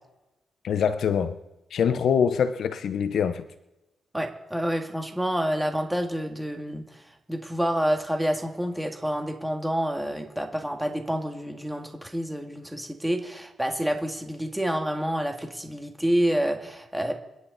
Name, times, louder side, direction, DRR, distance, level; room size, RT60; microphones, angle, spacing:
voice 1, 0.6-1.3 1.7-3.4, left 7 dB, 65° left, 11 dB, 0.8 m, -24 dB
voice 2, 4.1-6.8 7.3-17.1, equal, 5° right, 3 dB, 1.9 m, -28 dB
26.0 x 11.0 x 4.1 m, 0.99 s
wide cardioid pair, 140°, 0 cm